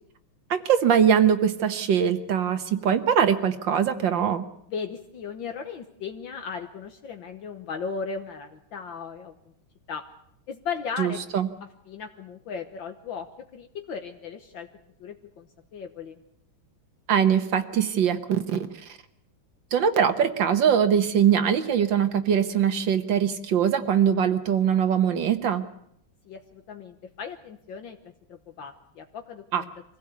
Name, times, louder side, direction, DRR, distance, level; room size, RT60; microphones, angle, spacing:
voice 1, 0.5-4.5 11.0-11.5 17.1-18.6 19.7-25.6 29.5-29.6, right 8 dB, 65° right, 9 dB, 1.7 m, -22 dB
voice 2, 4.7-9.3 9.9-10.0 10.5-11.2 11.9-14.7 15.0-16.2 26.3-29.7, left 6 dB, 65° left, 6 dB, 1.8 m, -37 dB
24.0 x 16.0 x 8.4 m, 0.74 s
omnidirectional pair, 2.3 m